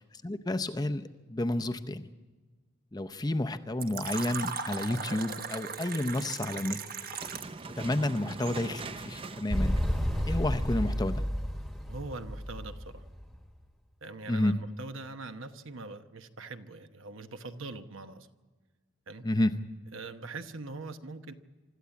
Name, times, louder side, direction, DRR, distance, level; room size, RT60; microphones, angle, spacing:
voice 1, 0.2-2.1 2.9-6.8 7.8-9.8 10.3-11.2 14.3-14.5 19.2-19.5, left 1 dB, 20° left, 9 dB, 0.6 m, -30 dB
Fill (with liquid), 3.8-7.6, right 5 dB, 45° right, 1.3 m, -37 dB
sound 1, 6.9-11.1, right 3 dB, 25° right, 0.5 m, -43 dB
Motorcycle, 9.5-13.4, equal, ahead, 1.2 m, -31 dB
voice 2, 11.9-13.0 14.0-18.3 19.1-19.2 19.9-21.3, right 3 dB, 70° right, 8 dB, 1.0 m, -42 dB
25.0 x 13.0 x 8.3 m, 1.3 s
head